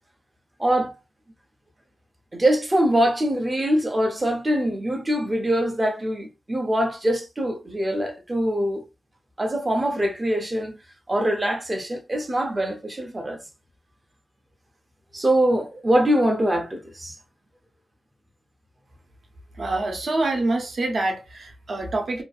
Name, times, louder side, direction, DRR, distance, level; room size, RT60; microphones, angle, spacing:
voice 1, 0.6-0.9 2.3-8.8 9.4-10.7 11.1-13.4 15.1-17.2, right 1 dB, 20° right, 0.5 m, -23 dB
voice 2, 19.6-22.2, right 2 dB, 55° right, 0.7 m, -26 dB
2.5 x 2.3 x 2.4 m
wide cardioid pair, 160°, 0 cm